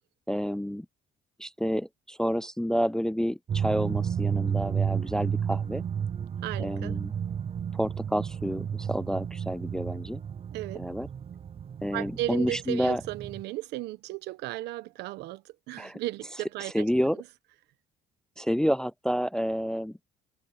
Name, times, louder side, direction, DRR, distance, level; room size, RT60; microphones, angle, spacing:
voice 1, 0.3-0.9 1.4-5.8 6.6-7.1 7.7-10.2 10.7-11.1 11.8-13.0 15.8-16.0 16.7-17.2 18.4-20.0, equal, 5° left, 0.3 m, -29 dB
sound 1, 3.5-13.4, right 8 dB, 35° right, 0.6 m, -32 dB
voice 2, 6.4-6.9 10.5-10.8 11.9-16.8, right 16 dB, 85° right, 1.1 m, -35 dB
cardioid pair, 110°, 17 cm